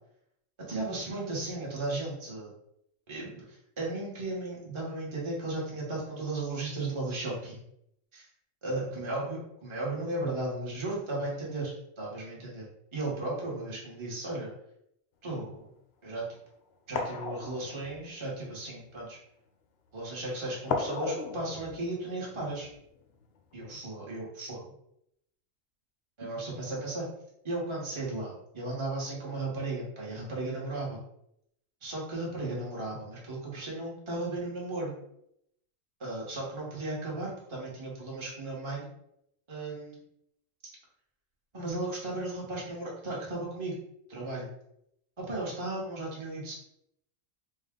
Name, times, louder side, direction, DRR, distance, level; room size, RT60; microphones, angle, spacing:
voice 1, 0.7-2.5 3.1-7.6 8.1-8.3 8.6-12.6 12.9-14.5 15.2-15.7 16.0-16.3 16.9-19.2 19.9-22.7 23.5-24.6 26.2-27.1 27.4-31.0 31.8-34.9 36.0-38.9 39.5-40.0 41.5-43.8 44.1-44.5 45.2-46.5, right 2 dB, 25° right, -4 dB, 1.0 m, -35 dB
sound 1, 15.3-15.6 16.4-16.5 16.9-18.6 20.7-23.2 23.5-23.7, left 4 dB, 65° left, 0.7 m, -36 dB
3.6 x 2.3 x 3.6 m, 0.76 s
omnidirectional pair, 1.4 m